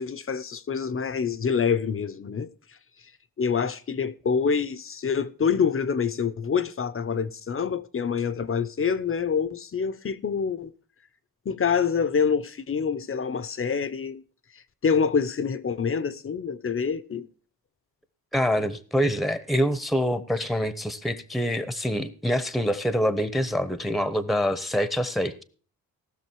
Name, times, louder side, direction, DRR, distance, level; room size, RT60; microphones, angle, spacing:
voice 1, 0.0-2.5 3.4-10.7 11.4-14.2 14.8-17.3, left 6 dB, 35° left, 0.8 m, -26 dB
voice 2, 18.3-25.4, equal, ahead, 1.0 m, -25 dB
18.5 x 6.4 x 4.6 m
cardioid pair, 105°, 37 cm